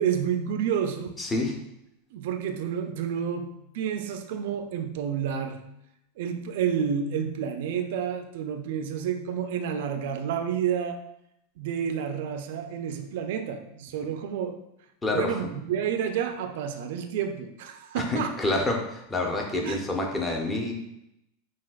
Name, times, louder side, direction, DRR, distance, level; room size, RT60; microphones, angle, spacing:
voice 1, 0.0-1.2 2.1-5.7 6.2-11.0 11.6-14.6 15.1-18.4 19.6-19.8, right 8 dB, 65° right, 7 dB, 0.4 m, -30 dB
voice 2, 1.2-1.5 15.0-15.4 18.0-20.7, left 2 dB, 15° left, 0 dB, 0.9 m, -28 dB
5.8 x 2.4 x 2.3 m, 0.82 s
hypercardioid pair, 95°, 0 cm